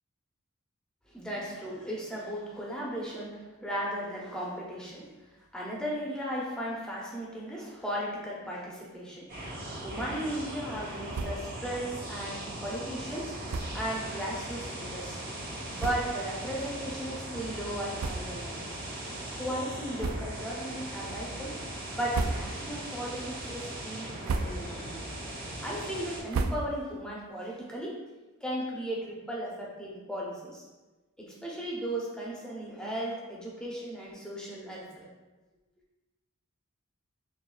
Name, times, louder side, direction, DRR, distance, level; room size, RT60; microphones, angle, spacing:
voice 1, 1.1-5.1 5.5-9.3 9.6-13.3 13.7-15.2 15.7-18.7 19.3-25.0 25.6-27.9 28.4-30.6 31.2-35.0, right 1 dB, 5° left, -5 dB, 0.8 m, -36 dB
sound 1, 9.3-26.2, right 1 dB, 45° right, 1.5 m, -39 dB
sound 2, 11.1-11.6 11.9-12.0 12.3-12.5 13.4-13.9 14.6-14.7 15.4-15.5 15.8-16.3 16.9-17.0 17.9-18.6 19.0-19.1 19.9-20.6 21.0-21.4 21.9-22.8 23.2-23.6 24.0-24.9 25.2-27.1, right 3 dB, 70° right, 0.3 m, -35 dB
6.3 x 2.6 x 2.4 m, 1.2 s
head